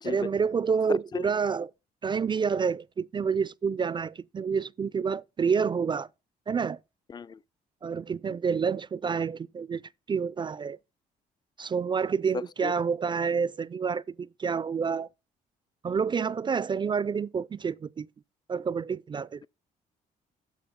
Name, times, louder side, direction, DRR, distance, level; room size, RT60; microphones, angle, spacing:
voice 1, 0.0-1.7 2.0-6.1 6.5-6.8 7.8-9.8 10.1-10.8 11.6-15.1 15.8-18.1 18.5-19.4, right 6 dB, 30° right, 0.4 m, -28 dB
voice 2, 0.9-1.3 7.1-7.4 12.3-12.7, left 5 dB, 25° left, 0.5 m, -35 dB
13.5 x 4.7 x 3.7 m
cardioid pair, 80°, 16 cm